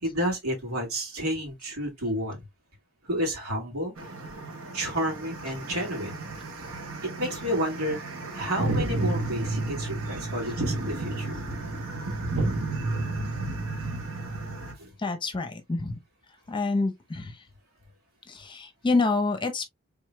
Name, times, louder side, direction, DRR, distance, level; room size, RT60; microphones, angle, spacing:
voice 1, 0.0-2.4 3.0-3.9 4.7-6.2 7.0-11.3 14.8-14.9, equal, 90° right, 2.3 m, -31 dB
sound 1, 4.0-14.7, right 2 dB, 75° right, 1.1 m, -32 dB
voice 2, 15.0-15.9 16.5-17.4 18.3-19.6, left 3 dB, 20° left, 0.7 m, -27 dB
4.8 x 3.6 x 2.3 m
head